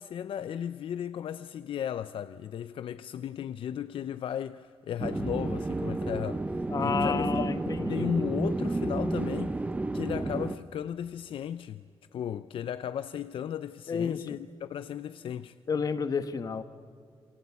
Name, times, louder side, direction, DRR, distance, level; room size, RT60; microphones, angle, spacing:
voice 1, 0.0-9.6 9.9-11.8 12.1-15.5, left 9 dB, 65° left, 0.6 m, -35 dB
sound 1, 5.0-10.6, right 2 dB, 15° right, 0.7 m, -31 dB
voice 2, 6.7-8.3 13.9-14.2 15.7-16.6, left 6 dB, 40° left, 1.2 m, -31 dB
28.0 x 23.5 x 8.4 m
wide cardioid pair, 175°, 10 cm